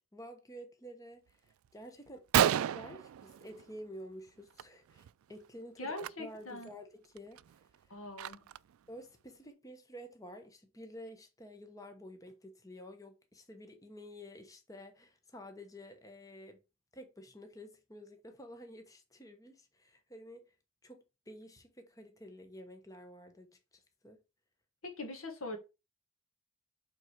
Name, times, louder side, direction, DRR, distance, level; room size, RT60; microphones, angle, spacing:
voice 1, 0.1-7.4 7.9-8.0 8.9-16.6 16.9-20.4 20.8-24.2, equal, 15° left, 1.0 m, -50 dB
Gunshot gunfire, 1.6-1.7 2.1-2.2 2.3-3.9 4.3-4.6 4.9-5.1 5.9-6.1 6.6-6.7 7.2-8.7, right 10 dB, 90° right, 0.3 m, -32 dB
voice 2, 5.8-6.7 7.9-8.5 24.8-25.6, left 2 dB, 85° left, 1.7 m, -42 dB
8.0 x 3.9 x 4.5 m
head